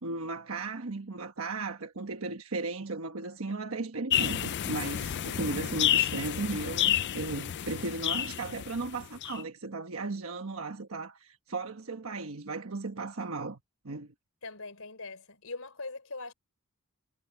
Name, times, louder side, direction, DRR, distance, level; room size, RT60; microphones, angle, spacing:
voice 1, 0.0-13.6 13.8-14.1, right 3 dB, 70° right, 1.3 m, -36 dB
sound 1, 4.1-9.4, left 11 dB, 55° left, 0.4 m, -30 dB
voice 2, 7.7-8.0 14.4-16.3, left 3 dB, 75° left, 5.1 m, -42 dB
head